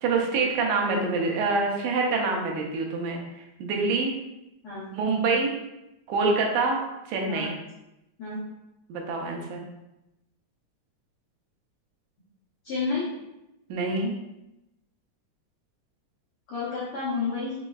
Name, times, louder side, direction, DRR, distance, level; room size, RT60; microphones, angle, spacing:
voice 1, 0.0-3.2 3.6-4.1 4.9-5.5 6.1-6.8 7.1-7.6 8.9-9.6 13.7-14.1, right 3 dB, 80° right, 0 dB, 2.0 m, -26 dB
voice 2, 12.6-13.1 16.5-17.5, left 4 dB, 75° left, -10 dB, 1.3 m, -30 dB
5.2 x 3.0 x 2.3 m, 0.92 s
omnidirectional pair, 3.7 m